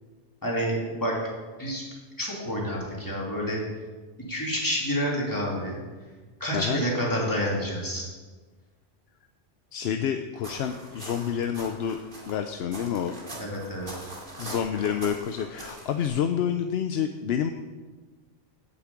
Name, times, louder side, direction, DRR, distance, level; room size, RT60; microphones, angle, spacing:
voice 1, 0.4-1.2 1.6-1.8 2.2-3.6 4.3-5.8 6.4-8.1 13.4-13.9, equal, 15° left, -4 dB, 2.9 m, -28 dB
voice 2, 9.7-12.0 12.3-13.1 14.4-17.5, left 8 dB, 65° left, 7 dB, 0.8 m, -28 dB
sound 1, 10.4-16.1, right 1 dB, 45° right, 2.3 m, -42 dB
8.6 x 8.1 x 8.3 m, 1.3 s
omnidirectional pair, 1.2 m